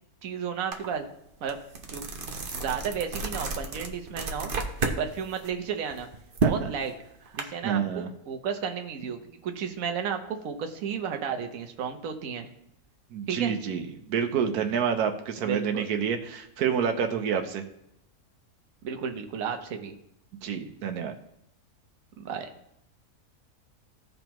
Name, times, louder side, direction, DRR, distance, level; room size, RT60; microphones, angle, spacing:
voice 1, 0.2-1.1 1.4-1.6 1.9-2.0 2.5-4.5 4.8-6.1 6.5-6.9 7.3-12.5 13.3-13.5 15.4-15.9 18.8-20.0 22.2-22.5, right 7 dB, 65° right, 5 dB, 1.3 m, -33 dB
sound 1, 0.7-0.9 1.3-5.0 5.4-7.4, right 3 dB, 40° right, 1.0 m, -31 dB
voice 2, 6.4-6.7 7.6-8.1 13.1-17.6 20.4-21.1, right 7 dB, 90° right, 6 dB, 1.3 m, -28 dB
16.0 x 5.3 x 3.0 m, 0.79 s
omnidirectional pair, 1.6 m